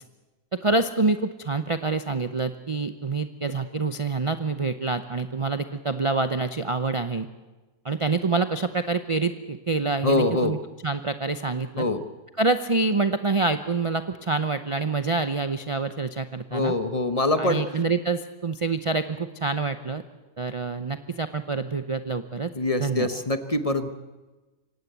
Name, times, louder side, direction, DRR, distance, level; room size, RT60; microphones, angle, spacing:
voice 1, 0.5-7.3 7.8-10.6 10.8-11.9 12.4-16.7 17.4-20.0 20.4-22.5 22.8-23.1, right 3 dB, 45° right, 10 dB, 0.4 m, -26 dB
voice 2, 10.0-10.6 11.8-12.0 16.5-17.6 22.5-23.9, left 2 dB, 25° left, 9 dB, 0.9 m, -24 dB
24.5 x 17.5 x 8.2 m, 1.2 s
omnidirectional pair, 1.7 m